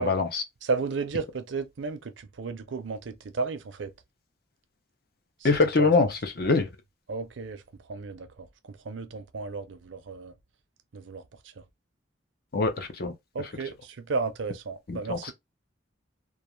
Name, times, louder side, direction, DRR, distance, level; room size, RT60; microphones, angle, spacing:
voice 1, 0.0-0.4 5.4-6.7 12.5-13.1 14.9-15.3, left 3 dB, 50° left, 0.6 m, -24 dB
voice 2, 0.6-3.9 5.4-5.5 5.8-5.9 7.1-7.6 7.9-8.3 8.7-10.3 10.9-11.2 11.6-11.7 13.3-15.3, right 4 dB, 75° right, 0.5 m, -33 dB
2.3 x 2.3 x 3.0 m
head